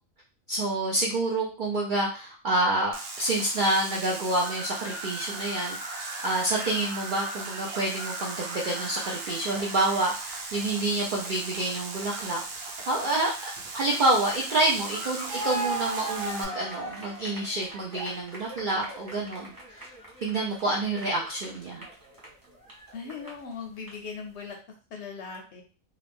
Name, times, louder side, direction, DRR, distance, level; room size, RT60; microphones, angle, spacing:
voice 1, 0.5-12.4 12.9-13.3 13.7-19.9 20.2-21.8, right 2 dB, 65° right, -2 dB, 0.5 m, -28 dB
sound 1, 2.9-16.4, right 3 dB, 90° right, 1.2 m, -38 dB
sound 2, 4.4-10.6, right 2 dB, 40° right, 1.0 m, -40 dB
sound 3, 9.6-9.8 10.3-11.9 12.2-12.8 13.2-14.4 14.7-23.5 23.8-23.9, right 1 dB, 20° right, 0.6 m, -38 dB
voice 2, 22.9-24.6 24.9-25.6, left 5 dB, 65° left, 2 dB, 0.7 m, -39 dB
2.4 x 2.3 x 3.4 m, 0.36 s
omnidirectional pair, 1.5 m